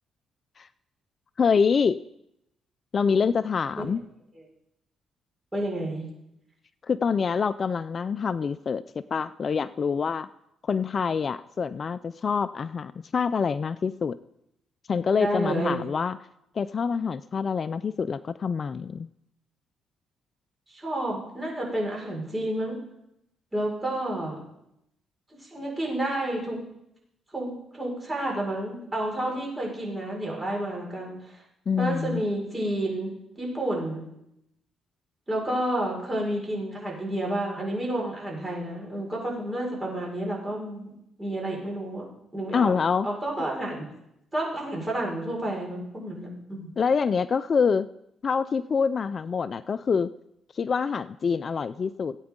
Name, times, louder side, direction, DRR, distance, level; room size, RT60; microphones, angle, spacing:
voice 1, 1.4-2.0 2.9-4.0 6.9-8.8 9.1-10.3 10.6-14.2 14.9-16.2 16.6-19.1 31.7-32.2 42.5-43.1 46.8-47.9 48.2-50.1 50.5-52.2, left 6 dB, 45° left, 14 dB, 0.3 m, -26 dB
voice 2, 5.5-6.1 15.2-15.8 20.7-22.8 23.5-24.4 25.4-26.6 27.3-31.3 31.8-33.1 33.4-34.0 35.3-40.9 41.2-42.0 42.3-42.8 43.0-43.8 44.3-46.7, right 1 dB, 15° right, -2 dB, 4.9 m, -30 dB
17.5 x 8.8 x 3.7 m, 0.81 s
cardioid pair, 90°, 0 cm